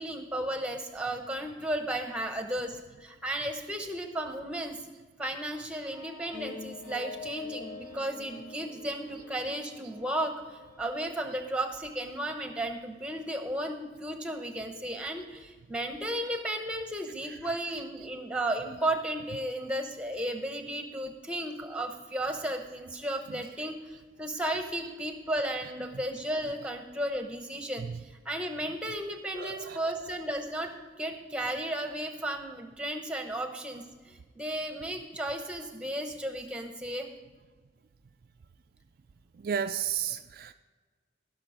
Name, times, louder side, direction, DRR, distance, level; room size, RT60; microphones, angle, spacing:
voice 1, 0.0-4.8 5.2-27.9 28.2-37.1, right 1 dB, 5° right, 5 dB, 0.9 m, -34 dB
sound 1, 5.8-11.0, left 3 dB, 75° left, 3.8 m, -45 dB
voice 2, 29.4-30.0 39.4-40.5, right 8 dB, 50° right, 8 dB, 0.3 m, -33 dB
15.5 x 6.2 x 5.1 m, 1.4 s
head